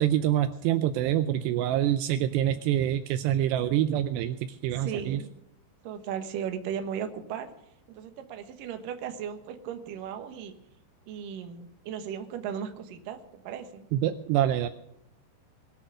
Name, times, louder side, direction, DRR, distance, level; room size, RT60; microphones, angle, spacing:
voice 1, 0.0-5.2 13.9-14.7, right 12 dB, 85° right, 10 dB, 2.4 m, -26 dB
voice 2, 4.7-5.3 5.8-7.5 7.9-10.5 11.1-13.9, right 8 dB, 65° right, 6 dB, 2.3 m, -36 dB
22.0 x 8.4 x 6.4 m, 0.81 s
omnidirectional pair, 5.6 m